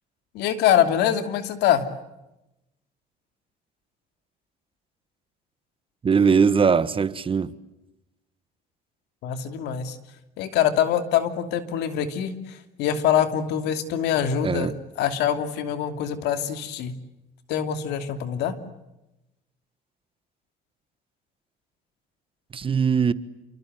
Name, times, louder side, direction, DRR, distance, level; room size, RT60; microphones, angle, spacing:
voice 1, 0.3-1.8 9.2-10.0 10.4-14.7 15.0-16.9 17.5-18.6, left 9 dB, 85° left, 2.8 m, -24 dB
voice 2, 6.0-7.5 14.4-14.7 22.5-23.1, right 6 dB, 30° right, 1.4 m, -20 dB
28.5 x 24.5 x 8.0 m
cardioid pair, 110°, 17 cm